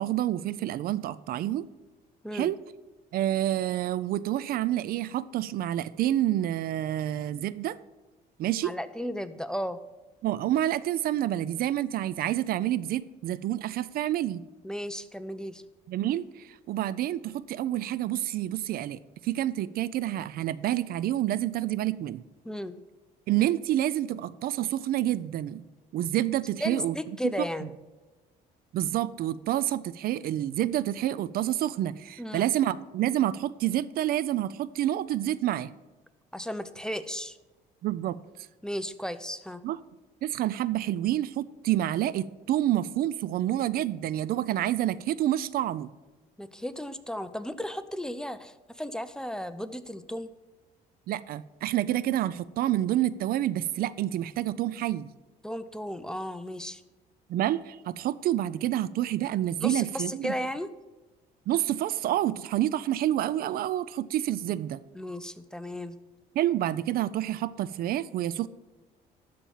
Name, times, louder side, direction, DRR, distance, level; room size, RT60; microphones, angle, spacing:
voice 1, 0.0-1.7 2.3-2.6 3.1-7.8 8.4-8.7 10.2-14.4 15.9-22.2 23.3-25.6 25.9-27.0 27.2-27.3 28.7-35.7 37.8-38.2 39.6-39.8 40.2-45.9 51.1-55.1 57.3-60.3 61.5-64.8 66.4-68.5, right 13 dB, 60° right, 18 dB, 0.4 m, -28 dB
voice 2, 8.6-9.8 14.6-15.6 22.4-22.8 26.6-27.7 32.2-32.5 36.3-37.4 38.6-39.6 46.4-50.3 55.4-56.8 59.6-60.7 64.9-66.0, equal, 5° left, 12 dB, 0.5 m, -34 dB
12.5 x 4.3 x 7.3 m, 1.2 s
cardioid pair, 110°, 17 cm